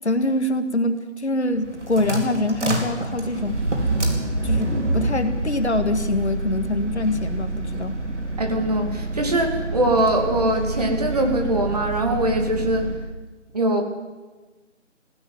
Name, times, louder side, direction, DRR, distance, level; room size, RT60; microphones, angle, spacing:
voice 1, 0.0-3.6 4.4-8.0, left 2 dB, 60° left, 8 dB, 1.9 m, -24 dB
sound 1, 1.5-13.0, right 2 dB, 65° right, 4.6 m, -27 dB
voice 2, 8.4-12.9 13.5-13.8, right 1 dB, 30° right, 3 dB, 2.2 m, -22 dB
17.5 x 16.0 x 9.3 m, 1.3 s
figure-of-eight pair, 170°, 38 cm